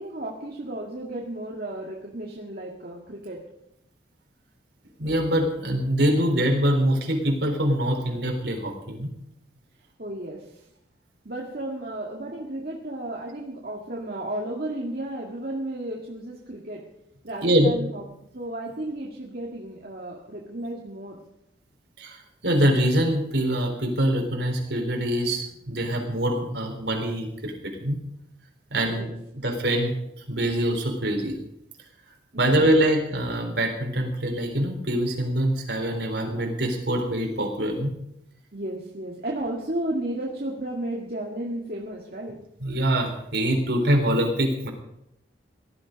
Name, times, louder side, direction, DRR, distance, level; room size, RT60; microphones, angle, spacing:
voice 1, 0.0-3.4 10.0-10.4 11.3-16.8 17.2-18.0 18.3-21.2 28.8-29.1 32.3-32.6 38.5-42.4, right 1 dB, 50° right, -2 dB, 1.9 m, -33 dB
voice 2, 5.0-9.1 17.4-17.7 22.0-27.5 27.8-28.0 28.7-29.1 29.4-29.9 30.3-31.3 32.4-37.9 42.6-44.7, right 1 dB, 70° right, 2 dB, 3.9 m, -24 dB
18.0 x 12.0 x 5.2 m, 0.80 s
head